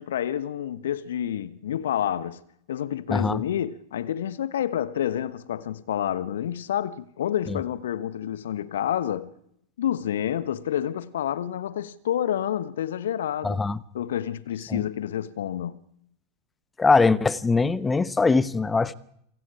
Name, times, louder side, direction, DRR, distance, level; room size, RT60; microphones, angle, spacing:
voice 1, 0.0-2.4 2.7-9.3 9.8-13.6 13.9-15.8, left 10 dB, 60° left, 1.2 m, -29 dB
voice 2, 3.1-3.4 7.5-7.6 13.4-13.8 14.7-14.8 16.8-18.9, left 4 dB, 10° left, 1.1 m, -22 dB
28.5 x 22.5 x 4.9 m
figure-of-eight pair, 90°, 0 cm